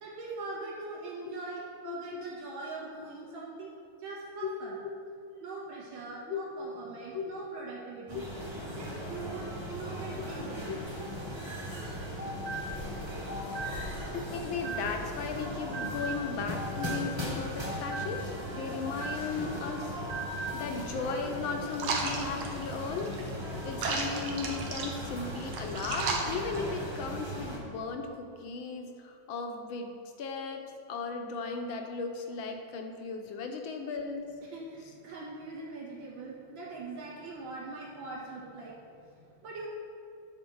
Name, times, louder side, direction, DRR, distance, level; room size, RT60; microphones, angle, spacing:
voice 1, 0.0-3.7 4.0-4.8 5.4-8.3 8.7-10.8 12.3-12.5 34.5-39.7, right 3 dB, 70° right, -5 dB, 2.5 m, -42 dB
voice 2, 1.8-2.2 4.4-4.5 6.3-6.4 7.1-7.3 8.1-8.2 10.2-10.3 10.7-10.8 14.1-20.0 20.5-23.1 23.6-34.3, left 4 dB, 75° left, 4 dB, 1.6 m, -36 dB
sound 1, 8.1-27.6, equal, 15° right, 1.1 m, -38 dB
sound 2, 11.9-15.2 15.5-19.5 19.8-20.6, right 2 dB, 50° right, 1.5 m, -40 dB
sound 3, 21.7-27.1, right 4 dB, 90° right, 1.9 m, -35 dB
10.5 x 4.5 x 6.3 m, 2.3 s
omnidirectional pair, 2.2 m